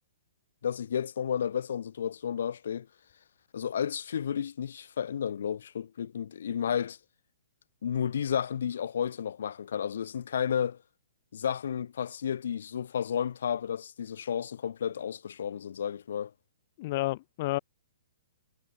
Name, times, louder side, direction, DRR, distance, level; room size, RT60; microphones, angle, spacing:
voice 1, 0.6-2.9 3.5-7.0 7.8-10.8 11.3-16.3, left 8 dB, 65° left, 2.9 m, -32 dB
voice 2, 16.8-17.6, left 18 dB, 35° left, 0.8 m, -30 dB
hypercardioid pair, 170°, 0 cm